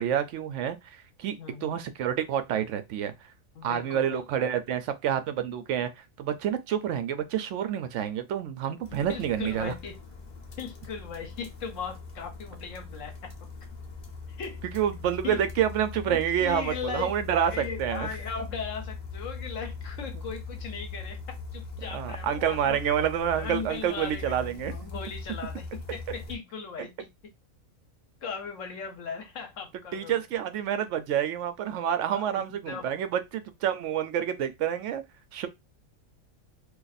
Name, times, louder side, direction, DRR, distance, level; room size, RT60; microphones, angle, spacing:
voice 1, 0.0-1.4 1.6-3.1 3.6-9.7 14.7-18.1 21.9-24.9 29.9-35.0 35.3-35.5, right 9 dB, 70° right, 0.8 m, -28 dB
voice 2, 1.4-1.8 3.6-4.2 9.1-10.0 10.6-13.5 14.4-14.6 15.2-15.4 16.0-22.8 23.3-27.3 28.2-30.2 32.1-33.0, left 6 dB, 70° left, 1.1 m, -38 dB
sound 1, 8.8-26.4, left 4 dB, 40° left, 0.7 m, -41 dB
2.6 x 2.5 x 4.0 m
omnidirectional pair, 1.4 m